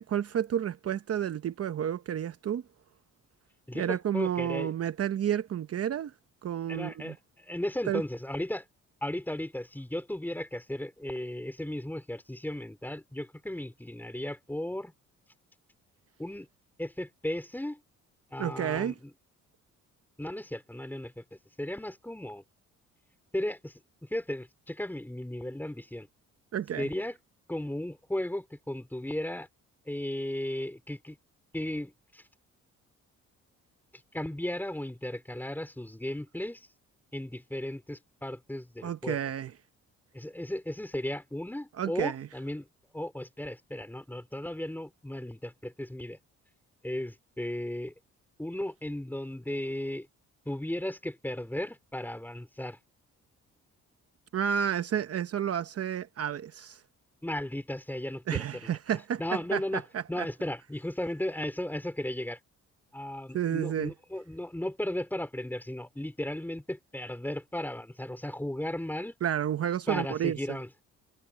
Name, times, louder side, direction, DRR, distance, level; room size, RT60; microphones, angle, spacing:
voice 1, 0.0-2.6 3.7-6.1 6.4-7.1 7.9-8.0 18.4-18.9 26.5-26.9 38.8-39.5 41.8-42.3 54.3-56.8 58.3-60.3 63.3-63.9 69.2-70.6, right 9 dB, 50° right, 0.9 m, -31 dB
voice 2, 3.7-4.7 6.7-8.7 9.0-14.9 16.2-16.5 16.8-17.8 18.3-19.1 20.2-22.4 23.3-23.7 24.0-26.1 26.8-27.2 27.5-29.5 29.9-31.2 31.5-32.2 34.1-36.7 37.1-39.2 40.1-42.7 42.9-46.2 46.8-47.9 48.4-50.1 50.5-52.8 57.2-58.8 59.2-59.8 60.1-62.4 62.9-69.1 69.9-70.7, left 1 dB, 5° left, 3.8 m, -35 dB
cardioid pair, 90°, 30 cm